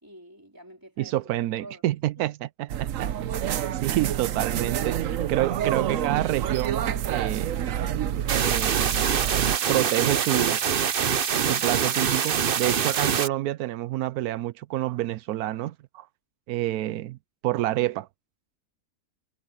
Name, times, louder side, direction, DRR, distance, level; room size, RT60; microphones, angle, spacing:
voice 1, 0.0-1.1 1.6-1.8 3.5-4.0, right 1 dB, 15° right, 3.9 m, -47 dB
voice 2, 1.0-3.1 3.4-7.6 8.4-8.9 9.7-10.6 11.4-16.1 16.5-17.2 17.4-18.1, right 15 dB, 85° right, 1.1 m, -28 dB
sound 1, 2.7-9.6, right 10 dB, 65° right, 1.1 m, -28 dB
sound 2, 8.3-13.3, right 7 dB, 45° right, 0.8 m, -24 dB
omnidirectional pair, 1.6 m